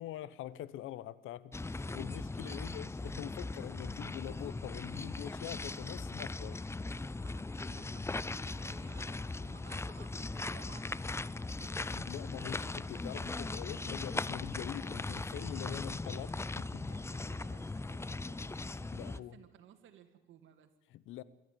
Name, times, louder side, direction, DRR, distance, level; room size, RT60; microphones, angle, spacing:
voice 1, 0.0-6.7 11.6-16.9 18.6-19.4 20.9-21.2, left 12 dB, 90° left, 1.0 m, -44 dB
sound 1, 1.5-19.2, left 3 dB, 15° left, 0.6 m, -39 dB
voice 2, 1.9-2.6 7.2-11.3 16.9-18.5 18.8-20.7, right 10 dB, 80° right, 2.1 m, -59 dB
26.0 x 12.0 x 9.1 m
cardioid pair, 90°, 20 cm